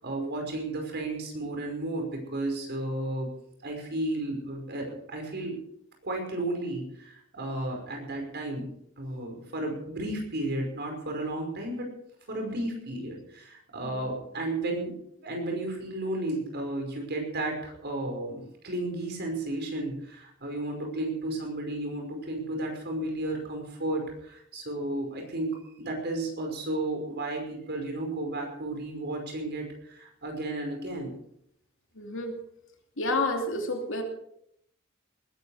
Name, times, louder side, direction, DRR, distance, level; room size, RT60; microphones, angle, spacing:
voice 1, 0.0-3.3 3.6-5.6 6.0-8.7 9.0-11.9 12.3-15.0 15.2-31.1, right 1 dB, 55° right, 2 dB, 5.4 m, -33 dB
voice 2, 32.0-32.3 33.0-34.0, left 2 dB, 65° left, 3 dB, 2.8 m, -30 dB
20.0 x 12.0 x 4.9 m, 0.73 s
head